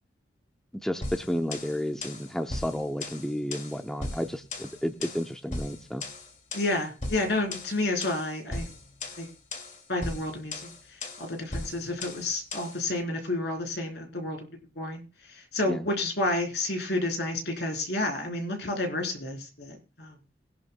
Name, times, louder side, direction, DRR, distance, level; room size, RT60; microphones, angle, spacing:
voice 1, 0.8-6.0 15.7-15.8, equal, 5° left, 5 dB, 0.6 m, -32 dB
sound 1, 1.0-12.8, left 2 dB, 45° left, 2.4 m, -38 dB
voice 2, 6.5-8.7 9.2-9.3 9.9-10.7 11.2-14.5 14.8-15.0 15.3-20.1, left 2 dB, 65° left, 2 dB, 3.8 m, -30 dB
21.0 x 11.0 x 2.3 m, 0.32 s
head